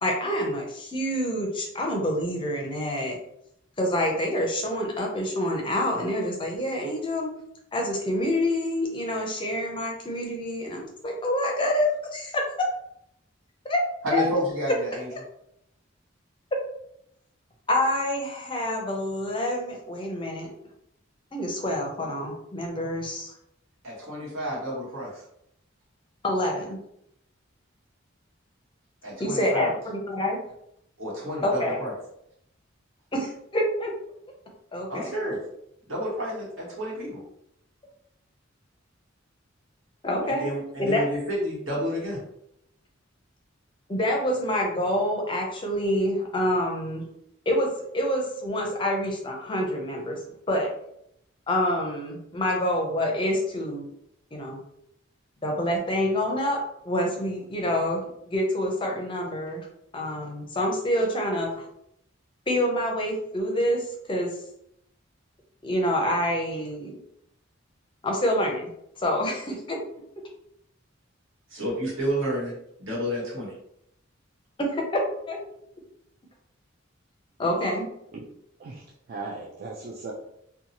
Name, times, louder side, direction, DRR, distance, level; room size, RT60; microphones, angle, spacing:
voice 1, 0.0-3.2 3.8-7.3 7.7-12.7 13.6-13.8 14.1-14.3 15.1-15.2 17.7-20.5 21.3-23.3 26.2-26.8 29.2-30.4 31.4-31.8 33.1-33.9 34.7-35.1 40.0-40.5 40.8-41.0 43.9-47.1 47.5-47.7 47.9-50.2 50.5-50.7 51.5-53.9 54.3-54.6 55.4-56.6 56.8-59.7 59.9-61.5 62.5-64.3 65.6-67.0 68.0-68.7 69.0-69.8 74.6-75.4 77.4-77.9, left 1 dB, 25° left, 1 dB, 0.5 m, -27 dB
voice 2, 14.0-15.1 23.8-25.2 29.0-29.7 31.0-31.9 34.9-35.4 35.9-37.2 40.3-42.2 71.5-72.5 72.8-73.5, equal, 80° right, -5 dB, 1.2 m, -30 dB
voice 3, 78.6-80.1, right 3 dB, 45° right, -3 dB, 0.4 m, -38 dB
2.7 x 2.2 x 2.8 m, 0.76 s
head